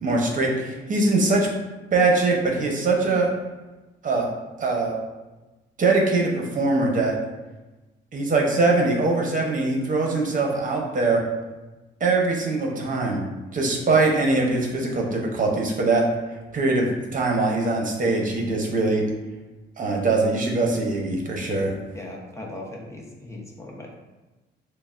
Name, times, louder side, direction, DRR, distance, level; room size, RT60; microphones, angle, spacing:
voice 1, 0.0-1.5 1.9-3.3 4.0-4.3 4.6-4.9 5.8-7.1 8.1-11.2 12.0-13.3 13.5-16.0 16.5-19.0 19.8-21.7, right 3 dB, 40° right, -1 dB, 1.0 m, -22 dB
voice 2, 21.9-23.9, left 1 dB, 15° left, -2 dB, 0.9 m, -38 dB
6.6 x 2.2 x 2.5 m, 1.1 s
cardioid pair, 90°, 20 cm